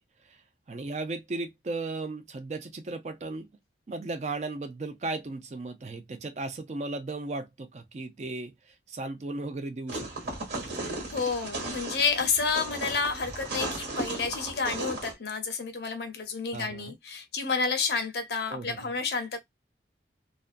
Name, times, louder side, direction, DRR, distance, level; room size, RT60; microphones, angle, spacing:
voice 1, 0.7-3.5 3.9-10.4 16.5-17.0 18.5-18.9, right 2 dB, 40° right, 0.4 m, -36 dB
sound 1, 9.9-15.1, right 2 dB, 70° right, 1.2 m, -36 dB
voice 2, 10.8-19.4, left 5 dB, 65° left, 0.6 m, -30 dB
2.5 x 2.2 x 2.4 m
head